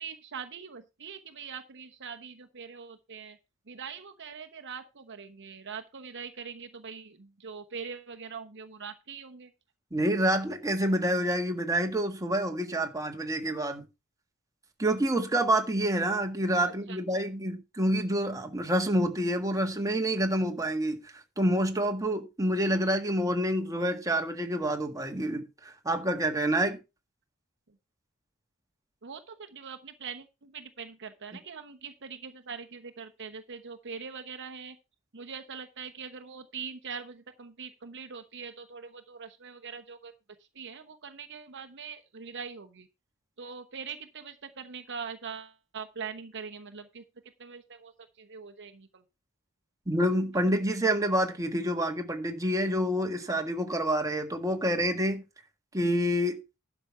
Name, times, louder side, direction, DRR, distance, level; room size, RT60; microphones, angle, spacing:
voice 1, 0.0-3.4 3.7-9.5 16.9-17.2 29.0-34.7 35.1-40.1 40.5-42.9 43.4-47.0 47.4-47.9 48.2-49.0, right 6 dB, 55° right, 1.0 m, -42 dB
voice 2, 9.9-13.8 14.8-21.0 21.4-26.8 49.9-55.2 55.7-56.4, right 1 dB, 15° right, 1.6 m, -27 dB
11.5 x 6.0 x 5.6 m
head